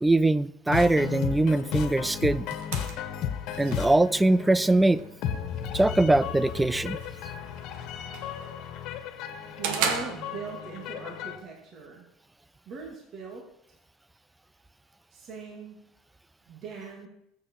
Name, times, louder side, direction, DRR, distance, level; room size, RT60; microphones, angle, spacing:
voice 1, 0.0-2.5 3.6-5.0 5.7-7.0, right 2 dB, 5° right, 0.4 m, -22 dB
sound 1, 0.7-11.4, left 9 dB, 50° left, 1.7 m, -35 dB
sound 2, 1.9-10.9, right 6 dB, 75° right, 2.0 m, -38 dB
voice 2, 9.6-12.1 12.7-13.4 15.1-15.9 16.5-17.1, right 4 dB, 35° right, 2.7 m, -40 dB
21.0 x 8.2 x 4.9 m
cardioid pair, 160°, 0 cm